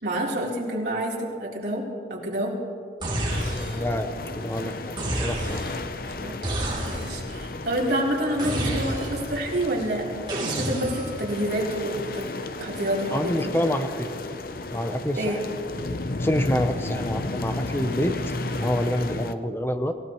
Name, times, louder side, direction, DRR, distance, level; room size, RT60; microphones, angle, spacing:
voice 1, 0.0-1.8 2.1-2.6 6.0-6.4 6.9-10.0 10.4-12.3 12.6-13.5 15.1-15.4, right 1 dB, 70° right, -5 dB, 3.8 m, -28 dB
sound 1, 3.0-3.9 5.0-5.8 6.4-7.3 8.4-9.3 10.3-11.2, right 1 dB, 25° right, 3.4 m, -29 dB
sound 2, 3.3-19.3, left 2 dB, 50° left, 0.7 m, -33 dB
voice 2, 3.5-5.6 13.1-14.1 14.7-15.4 16.2-18.3 18.6-19.9, equal, 15° left, 8 dB, 0.8 m, -27 dB
26.5 x 16.5 x 3.2 m, 2.4 s
head